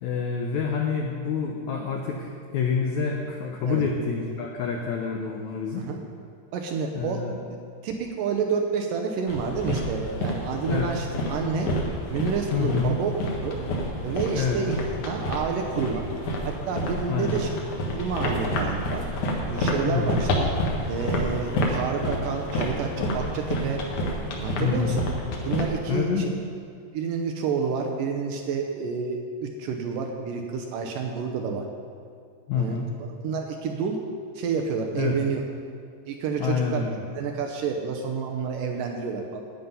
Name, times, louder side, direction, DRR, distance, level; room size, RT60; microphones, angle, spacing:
voice 1, 0.0-5.9 6.9-7.4 10.7-10.9 12.5-12.9 14.4-14.6 17.1-17.4 19.9-20.2 24.6-25.0 25.9-26.3 32.5-32.9 34.9-35.1 36.4-37.0, left 6 dB, 85° left, 1 dB, 1.6 m, -27 dB
voice 2, 6.5-7.2 7.8-11.7 12.1-13.1 13.4-13.6 14.0-16.1 16.4-17.5 17.9-19.1 19.5-20.3 20.8-23.8 24.4-25.1 25.4-26.3 26.9-31.7 32.5-34.0 34.4-35.4 36.1-36.8 37.2-39.4, right 5 dB, 75° right, 3 dB, 2.2 m, -29 dB
sound 1, 9.3-25.7, left 1 dB, 60° left, 2.4 m, -29 dB
11.5 x 9.4 x 5.6 m, 2.3 s
omnidirectional pair, 4.5 m